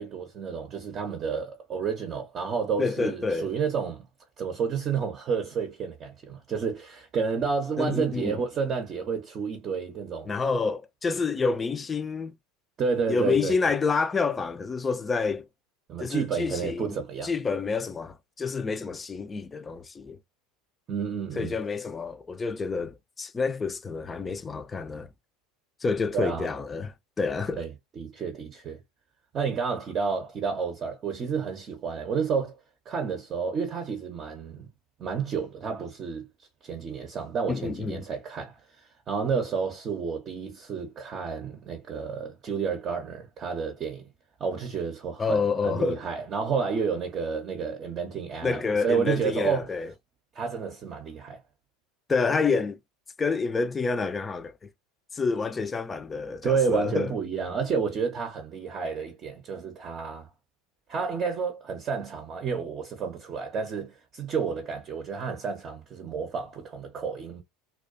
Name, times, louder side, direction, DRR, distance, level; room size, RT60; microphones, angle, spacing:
voice 1, 0.0-4.1 4.4-10.3 12.8-13.5 15.9-17.3 20.9-21.5 26.1-26.5 27.6-27.7 28.0-28.8 29.3-32.6 32.9-34.7 35.0-36.3 36.6-44.1 44.4-49.7 50.3-51.4 56.4-60.3 60.9-67.4, right 6 dB, 35° right, 0.6 m, -30 dB
voice 2, 2.8-3.5 7.8-8.4 10.3-12.3 13.1-15.5 16.0-17.0 17.2-20.2 21.4-25.1 25.8-27.6 37.5-38.0 45.2-46.0 48.4-49.9 52.1-52.8 53.2-54.5 55.1-57.1, left 4 dB, 20° left, 0.4 m, -28 dB
2.4 x 2.2 x 2.4 m
figure-of-eight pair, 75°, 0 cm